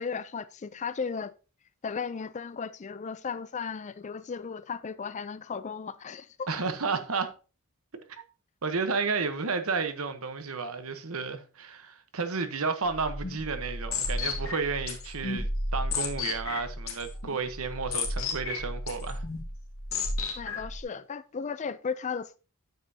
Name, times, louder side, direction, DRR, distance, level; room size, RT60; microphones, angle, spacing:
voice 1, 0.0-1.3 1.8-6.5 20.3-22.4, left 5 dB, 35° left, 0.4 m, -35 dB
voice 2, 6.5-7.3 8.1-8.2 8.6-19.2, right 4 dB, 75° right, 1.1 m, -32 dB
sound 1, 12.9-20.8, left 3 dB, 65° left, 1.8 m, -33 dB
9.2 x 7.4 x 2.8 m
head